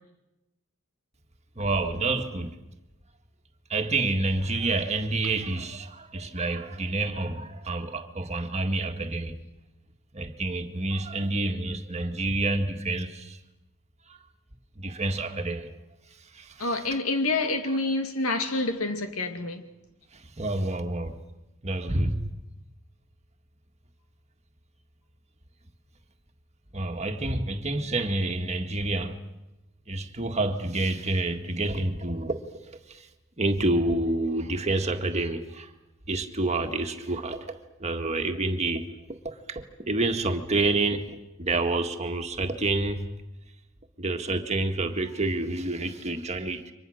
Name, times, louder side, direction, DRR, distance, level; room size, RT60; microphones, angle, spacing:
voice 1, 1.6-2.5 3.7-9.4 10.1-13.4 14.1-14.2 14.8-15.7 16.3-16.8 20.1-21.2 21.6-22.3 26.7-29.2 29.9-32.4 32.9-33.1 33.4-35.7 36.1-38.8 39.2-41.1 41.4-43.1 44.0-46.7, right 2 dB, 30° right, 1.8 m, -28 dB
voice 2, 16.6-19.6, left 2 dB, 85° left, 2.2 m, -27 dB
29.5 x 24.5 x 6.5 m
head